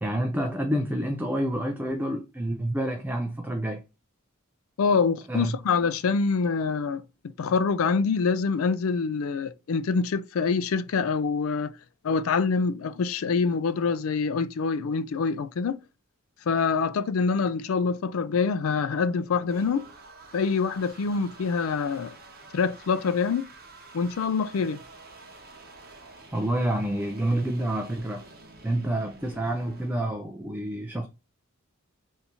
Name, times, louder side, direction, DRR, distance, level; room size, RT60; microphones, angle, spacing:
voice 1, 0.0-3.8 5.3-5.6 26.3-28.3 28.6-31.1, right 1 dB, 10° right, 0.4 m, -28 dB
voice 2, 4.8-7.0 7.4-11.7 12.0-15.8 16.5-19.9 20.3-22.2 22.5-23.5 23.9-24.8, left 5 dB, 70° left, 0.4 m, -25 dB
sound 1, 18.9-30.1, right 3 dB, 45° right, 0.9 m, -49 dB
3.6 x 2.6 x 2.8 m
head